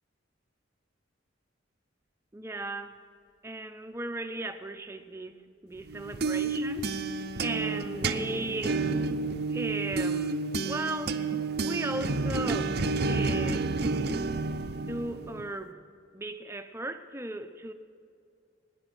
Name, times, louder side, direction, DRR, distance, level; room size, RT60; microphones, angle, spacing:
voice 1, 2.3-3.0 3.4-8.8 9.5-11.2 11.6-12.7 13.1-13.7 14.7-15.8 16.1-17.7, right 2 dB, 15° right, 0.6 m, -36 dB
sound 1, 5.9-15.5, right 3 dB, 55° right, 0.6 m, -30 dB
19.5 x 9.9 x 6.1 m
head